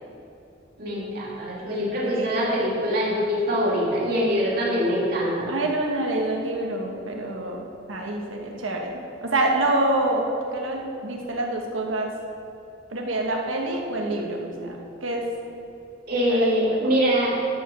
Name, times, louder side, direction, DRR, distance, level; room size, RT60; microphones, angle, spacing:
voice 1, 0.8-5.5 16.1-17.4, equal, 50° right, -5 dB, 2.4 m, -23 dB
voice 2, 2.0-2.3 5.5-7.6 7.9-10.3 10.5-12.1 12.9-15.3 16.3-16.5, right 2 dB, 85° right, 0 dB, 1.4 m, -27 dB
12.5 x 5.3 x 6.1 m, 2.8 s
head